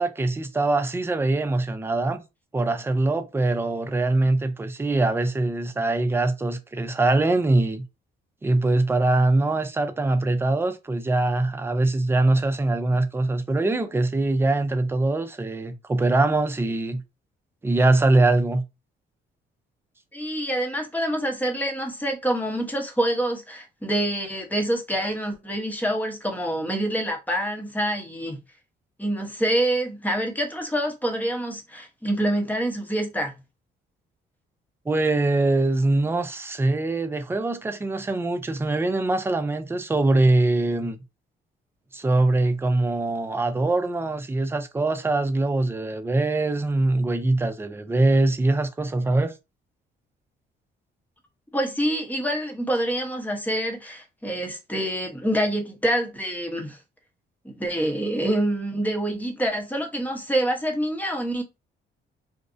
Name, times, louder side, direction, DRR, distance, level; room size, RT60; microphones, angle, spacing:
voice 1, 0.0-2.2 2.5-7.8 8.4-17.0 17.6-18.6 34.9-41.0 41.9-49.3, right 2 dB, 10° right, 0.4 m, -23 dB
voice 2, 20.1-28.4 29.0-33.3 51.5-56.8 57.4-61.4, right 1 dB, 10° left, 0.7 m, -26 dB
2.5 x 2.0 x 2.4 m
cardioid pair, 90°, 20 cm